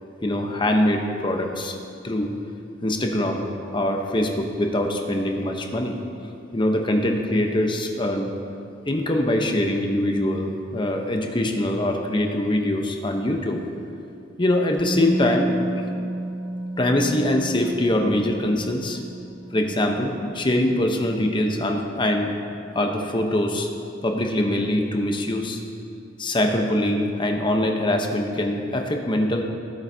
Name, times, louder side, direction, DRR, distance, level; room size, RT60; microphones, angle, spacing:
voice 1, 0.2-1.8 2.0-2.3 2.8-3.4 3.7-6.0 6.5-8.3 8.9-13.6 14.4-15.5 16.8-19.0 19.5-22.3 22.7-23.7 24.0-25.6 26.2-29.4, left 1 dB, 25° left, 3 dB, 0.9 m, -23 dB
Musical instrument, 14.8-22.7 22.9-23.1, right 1 dB, 20° right, 1.7 m, -33 dB
18.0 x 7.9 x 2.8 m, 2.6 s
head